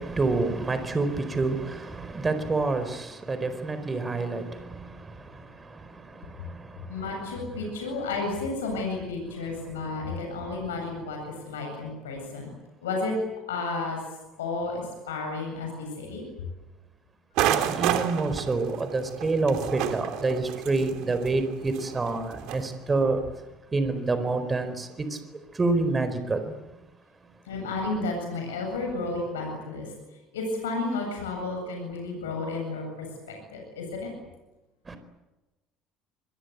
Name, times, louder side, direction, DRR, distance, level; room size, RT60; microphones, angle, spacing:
voice 1, 0.0-4.4 17.5-23.2 23.7-24.9 25.6-26.4 34.9-35.0, right 3 dB, 25° right, 4.5 m, -27 dB
voice 2, 6.9-12.5 12.8-13.2 13.5-14.0 14.4-16.2 27.4-29.9 30.3-34.1, left 3 dB, 85° left, 8.0 m, -32 dB
sound 1, 17.4-22.7, right 11 dB, 65° right, 3.0 m, -30 dB
28.5 x 22.5 x 8.3 m
hypercardioid pair, 70°, 0 cm